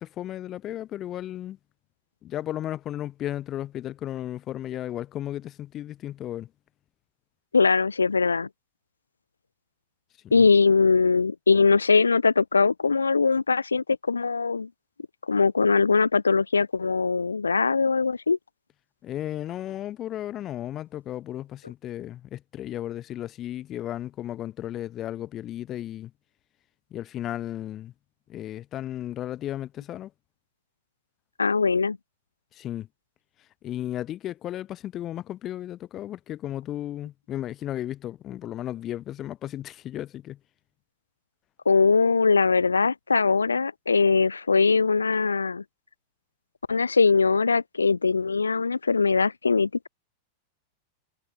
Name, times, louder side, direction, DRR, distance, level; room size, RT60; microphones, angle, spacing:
voice 1, 0.0-1.6 2.2-6.5 10.2-10.5 19.0-26.1 26.9-27.9 28.3-30.1 32.5-32.9 33.6-40.4, left 12 dB, 30° left, 1.9 m, -34 dB
voice 2, 7.5-8.5 10.3-14.7 15.3-18.4 31.4-32.0 41.7-45.6 46.7-49.9, left 4 dB, 75° left, 0.4 m, -21 dB
figure-of-eight pair, 90°, 0 cm